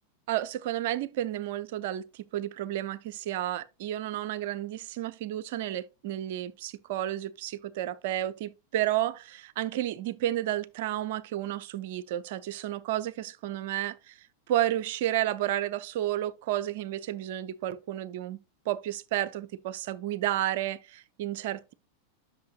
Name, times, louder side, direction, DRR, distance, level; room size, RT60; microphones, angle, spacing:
voice 1, 0.3-18.4 18.7-21.7, right 13 dB, 50° right, 0.6 m, -32 dB
11.0 x 6.4 x 2.3 m
figure-of-eight pair, 90°, 0 cm